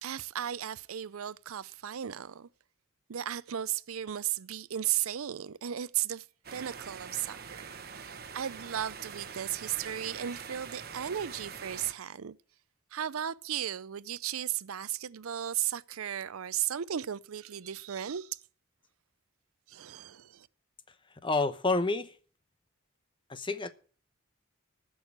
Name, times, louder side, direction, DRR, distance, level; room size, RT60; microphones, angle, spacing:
voice 1, 0.0-2.5 3.1-6.3 6.5-12.4 12.9-18.4 19.7-20.5, right 10 dB, 85° right, 0.5 m, -35 dB
sound 1, 6.4-11.9, right 6 dB, 45° right, 1.1 m, -44 dB
voice 2, 21.2-22.2 23.3-23.7, left 3 dB, 25° left, 0.9 m, -29 dB
14.5 x 6.4 x 8.6 m
head